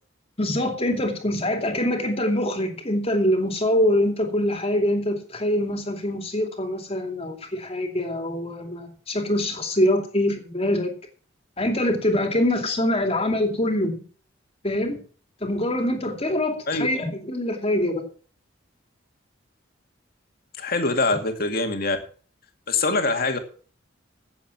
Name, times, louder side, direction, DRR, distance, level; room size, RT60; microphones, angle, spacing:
voice 1, 0.4-10.9 11.6-14.0 14.6-15.0 15.4-18.1, left 1 dB, 30° left, 2.6 m, -24 dB
voice 2, 20.6-22.0 22.7-23.4, left 3 dB, 50° left, 2.2 m, -23 dB
15.5 x 7.7 x 6.0 m
head